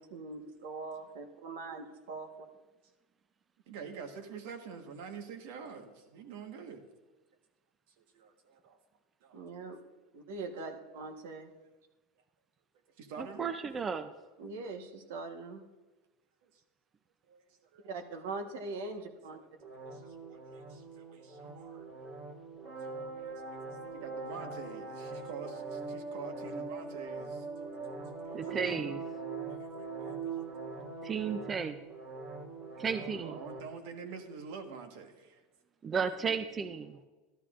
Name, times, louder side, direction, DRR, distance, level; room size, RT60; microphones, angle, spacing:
voice 1, 0.0-2.5 9.3-9.8 10.1-11.5 14.4-15.6 17.8-19.4 28.4-28.6 35.9-36.0, right 3 dB, 85° right, 5 dB, 1.2 m, -42 dB
voice 2, 3.7-6.8 8.1-8.8 9.2-9.4 9.9-10.0 13.0-13.5 16.4-16.5 17.3-17.9 19.3-19.5 19.9-21.9 22.8-23.3 23.6-27.5 28.2-28.4 29.5-30.5 32.7-32.8 33.1-35.4, right 5 dB, 70° right, 6 dB, 1.3 m, -47 dB
voice 3, 13.2-14.1 28.3-29.0 31.0-31.8 32.8-33.4 35.8-37.0, right 6 dB, 20° right, 9 dB, 0.4 m, -34 dB
sound 1, 19.6-33.6, right 4 dB, 40° right, 1.4 m, -42 dB
12.5 x 12.0 x 2.5 m, 1.2 s
supercardioid pair, 150°, 0 cm